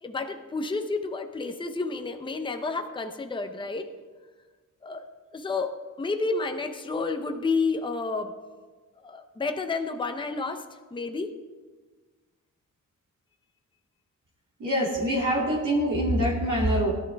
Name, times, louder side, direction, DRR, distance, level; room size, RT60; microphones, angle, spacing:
voice 1, 0.0-3.9 4.8-5.0 5.3-8.3 9.0-10.6 10.9-11.3, left 3 dB, 15° left, 6 dB, 0.6 m, -30 dB
voice 2, 14.6-16.9, equal, 65° right, -5 dB, 2.6 m, -24 dB
18.0 x 11.5 x 3.4 m, 1.4 s
wide cardioid pair, 175°, 32 cm